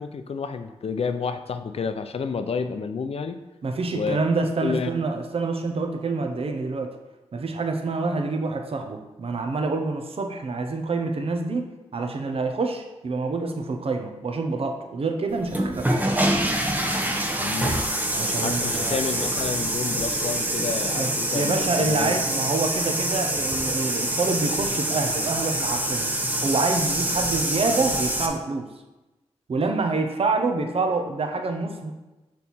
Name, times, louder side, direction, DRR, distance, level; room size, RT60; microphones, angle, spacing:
voice 1, 0.0-3.4 3.9-4.2 4.6-4.9 17.4-17.8 18.3-22.1, left 5 dB, 60° left, 9 dB, 0.5 m, -30 dB
voice 2, 3.6-6.9 7.3-15.9 18.1-19.0 21.0-26.1 26.4-28.7 29.5-31.9, right 3 dB, 55° right, 4 dB, 0.8 m, -27 dB
sound 1, 15.4-28.3, right 1 dB, 15° right, 0.9 m, -25 dB
6.5 x 4.2 x 4.2 m, 1.0 s
wide cardioid pair, 80°, 12 cm